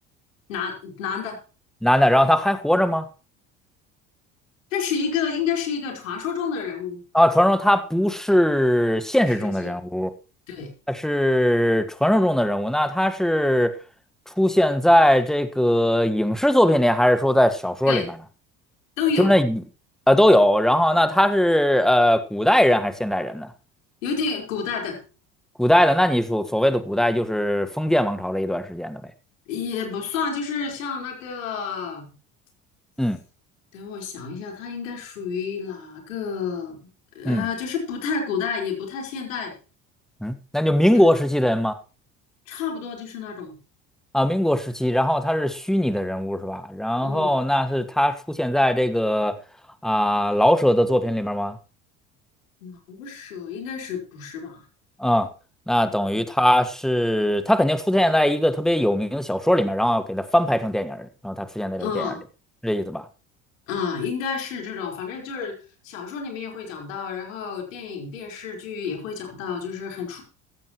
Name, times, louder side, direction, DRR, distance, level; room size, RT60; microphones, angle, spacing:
voice 1, 0.5-1.4 4.7-7.0 9.3-9.7 10.5-10.7 17.9-18.1 19.0-19.3 24.0-25.0 29.5-32.1 33.7-36.8 37.1-39.5 40.9-41.0 42.5-43.5 47.0-47.3 52.6-54.6 61.8-62.2 63.7-65.5 65.8-70.2, left 6 dB, 80° left, 4.8 m, -30 dB
voice 2, 1.8-3.0 7.1-10.1 10.9-13.8 14.4-18.0 19.2-19.6 20.1-23.5 25.6-29.0 33.0-33.2 37.2-37.4 40.2-41.7 44.1-49.3 49.8-51.6 55.0-55.3 55.7-62.1 62.6-63.0, equal, ahead, 1.5 m, -20 dB
15.0 x 14.5 x 3.1 m
hypercardioid pair, 65°, 39 cm